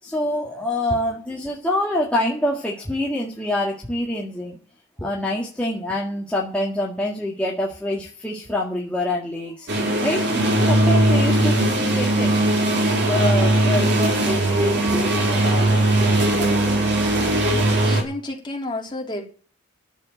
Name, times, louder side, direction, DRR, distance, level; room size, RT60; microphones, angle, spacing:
voice 1, 0.0-4.6 5.0-9.7 10.0-10.2 10.7-12.3 12.8-17.4, left 1 dB, 5° left, 1.9 m, -26 dB
sound 1, 9.7-18.0, right 1 dB, 55° right, 3.5 m, -19 dB
voice 2, 17.4-19.2, left 1 dB, 25° left, 3.5 m, -31 dB
10.5 x 7.6 x 8.9 m
head